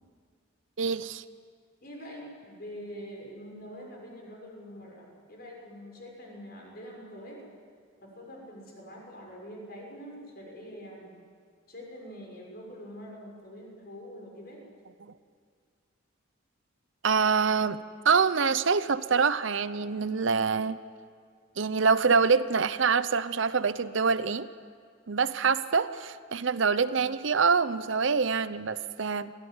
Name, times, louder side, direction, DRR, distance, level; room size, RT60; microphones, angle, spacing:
voice 1, 0.8-1.2 15.0-15.1 17.0-17.8 18.0-20.8 21.6-24.5 25.1-29.3, right 5 dB, 70° right, 14 dB, 0.7 m, -25 dB
voice 2, 1.8-7.4 8.0-11.1 11.7-14.6, equal, 50° left, -1 dB, 6.4 m, -45 dB
23.5 x 16.5 x 9.7 m, 2.1 s
head